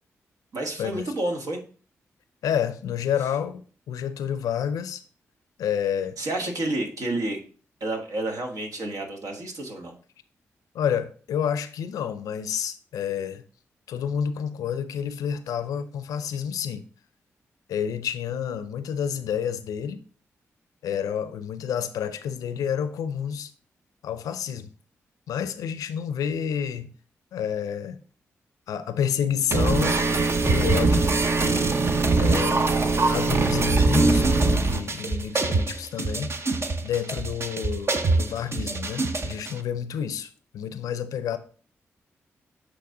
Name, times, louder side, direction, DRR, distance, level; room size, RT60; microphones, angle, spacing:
voice 1, 0.5-1.6 6.2-7.4 7.8-10.0, right 2 dB, 70° right, 1.5 m, -30 dB
voice 2, 2.4-3.6 3.9-5.0 5.6-6.2 10.7-13.4 13.9-16.8 17.7-20.0 20.8-23.5 24.0-24.7 25.3-26.9 27.3-28.0 28.7-31.1 32.2-32.7 33.1-36.3 36.8-41.4, left 8 dB, 85° left, 0.5 m, -29 dB
sound 1, 29.5-39.5, right 3 dB, 45° right, 0.8 m, -22 dB
7.9 x 3.2 x 3.7 m
supercardioid pair, 45°, 6 cm